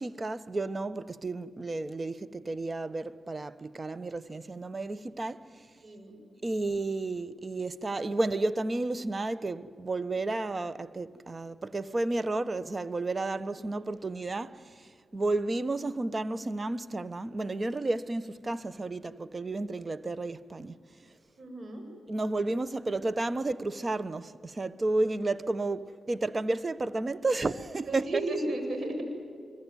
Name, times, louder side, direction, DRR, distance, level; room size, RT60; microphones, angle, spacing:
voice 1, 0.0-5.7 6.4-20.8 22.1-28.2, right 2 dB, 40° right, 1.2 m, -32 dB
voice 2, 5.8-6.1 21.4-21.8 27.9-29.0, right 2 dB, 55° right, 7.8 m, -33 dB
25.0 x 23.5 x 9.4 m
supercardioid pair, 45°, 0 cm